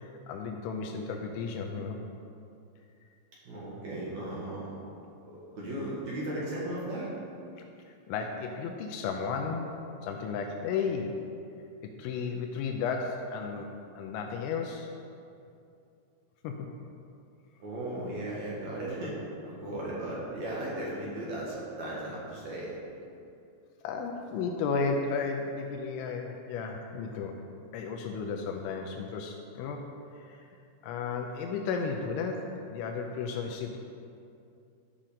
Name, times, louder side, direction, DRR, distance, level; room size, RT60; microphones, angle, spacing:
voice 1, 0.0-2.0 8.1-11.2 11.8-14.9 16.4-16.7 23.8-27.4 27.7-29.9 30.2-30.5 30.8-33.8, left 5 dB, 85° left, 2 dB, 3.0 m, -34 dB
voice 2, 3.4-4.7 5.2-7.1 17.6-19.1 19.4-22.8, right 1 dB, 60° right, -6 dB, 2.0 m, -36 dB
13.5 x 5.8 x 5.0 m, 2.6 s
omnidirectional pair, 5.6 m